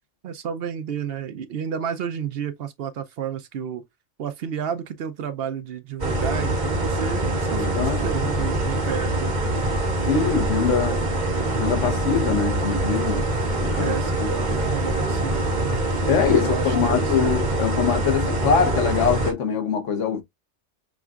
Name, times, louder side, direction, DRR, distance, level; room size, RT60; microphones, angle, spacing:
voice 1, 0.2-3.8 4.2-9.7 13.7-15.8 16.3-17.3, right 8 dB, 65° right, 0.7 m, -31 dB
sound 1, 6.0-19.3, right 1 dB, 40° right, 1.3 m, -24 dB
voice 2, 7.6-8.0 10.1-11.1 11.5-13.3 13.6-14.3 16.1-20.2, left 6 dB, 85° left, 1.3 m, -23 dB
6.1 x 2.3 x 2.3 m
omnidirectional pair, 1.2 m